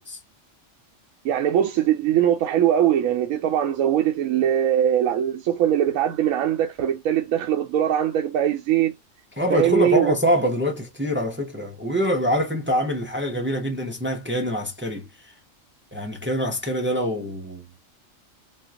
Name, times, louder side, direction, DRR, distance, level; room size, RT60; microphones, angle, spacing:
voice 1, 1.2-8.9 9.5-10.1, right 10 dB, 85° right, 1.0 m, -21 dB
voice 2, 9.4-15.1 15.9-17.8, equal, 15° right, 0.3 m, -24 dB
4.4 x 2.1 x 2.3 m
omnidirectional pair, 1.4 m